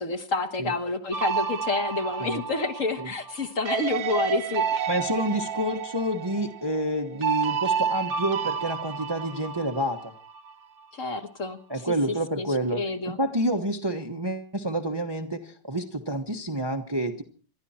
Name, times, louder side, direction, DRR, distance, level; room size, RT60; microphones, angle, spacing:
voice 1, 0.0-4.9 10.9-11.6 12.4-12.5 12.8-13.2, left 3 dB, 45° left, 6 dB, 1.7 m, -29 dB
sound 1, 1.1-10.5, right 7 dB, 60° right, 1.3 m, -30 dB
voice 2, 4.9-10.1 11.7-17.2, right 1 dB, 15° right, 5 dB, 1.0 m, -28 dB
28.0 x 12.0 x 4.3 m, 0.40 s
omnidirectional pair, 1.9 m